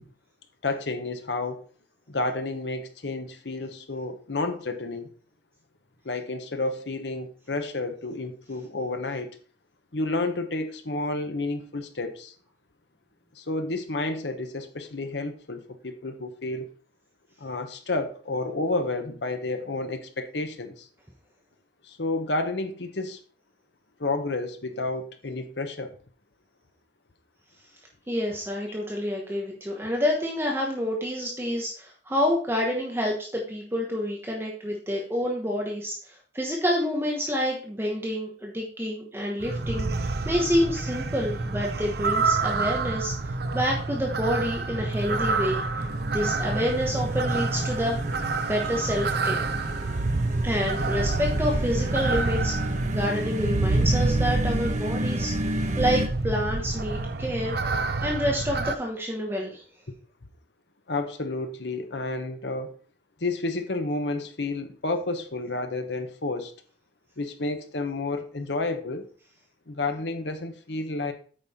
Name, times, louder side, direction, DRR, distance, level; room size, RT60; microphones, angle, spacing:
voice 1, 0.6-1.6 2.1-5.1 6.0-9.4 9.9-12.3 13.4-16.7 17.4-20.9 21.8-23.2 24.0-25.9 60.9-62.8 63.2-66.5 67.2-69.1 69.7-71.1, left 2 dB, 75° left, 1.1 m, -30 dB
voice 2, 28.1-43.1 43.5-45.9 46.1-48.0 48.5-49.5 50.4-55.3 55.8-57.6 58.0-59.6, equal, 15° right, 1.1 m, -28 dB
sound 1, 39.4-58.7, right 3 dB, 60° right, 0.6 m, -27 dB
sound 2, 45.8-56.1, equal, 40° right, 0.9 m, -34 dB
8.7 x 5.5 x 4.2 m
head